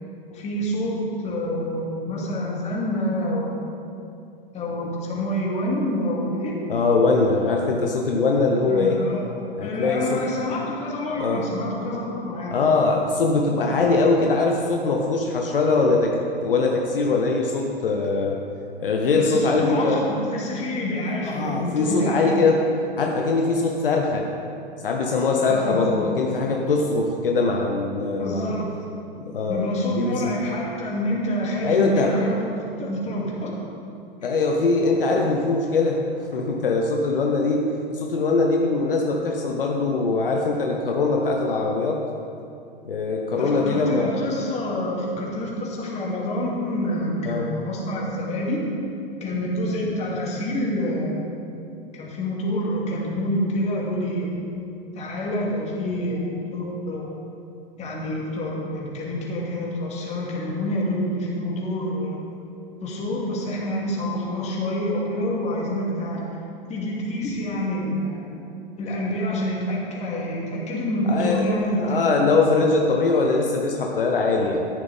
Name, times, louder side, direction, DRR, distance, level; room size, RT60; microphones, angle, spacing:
voice 1, 0.3-3.5 4.5-6.6 8.7-9.3 9.6-12.5 16.7-16.8 19.1-22.3 25.5-25.8 28.2-28.9 29.5-32.5 32.8-33.5 35.1-35.3 43.4-48.6 49.2-51.6 51.9-54.3 54.9-57.1 57.8-62.2 62.8-66.2 66.7-68.2 68.8-72.0, left 1 dB, 25° left, -4 dB, 2.7 m, -27 dB
voice 2, 6.7-9.0 9.6-10.2 11.2-11.4 12.5-16.1 16.4-18.4 18.8-20.0 21.2-22.7 23.0-24.3 24.8-28.5 29.2-29.6 29.9-30.3 31.6-32.1 34.2-36.0 36.3-37.6 37.9-42.0 42.8-44.2 47.2-47.5 71.1-71.5 71.8-74.7, left 3 dB, 65° left, 1 dB, 1.2 m, -22 dB
13.5 x 11.0 x 3.6 m, 2.5 s
figure-of-eight pair, 95°, 29 cm